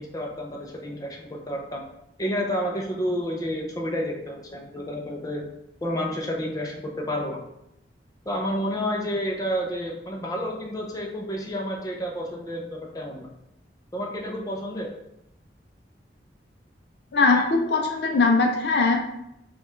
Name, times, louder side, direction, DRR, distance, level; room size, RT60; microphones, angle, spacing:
voice 1, 0.0-1.8 2.2-5.5 5.8-7.4 8.3-13.3 13.9-14.9 17.3-17.4, equal, 20° left, -1 dB, 0.6 m, -30 dB
voice 2, 17.1-19.0, left 3 dB, 65° left, 3 dB, 0.5 m, -20 dB
5.1 x 2.4 x 3.1 m, 0.82 s
head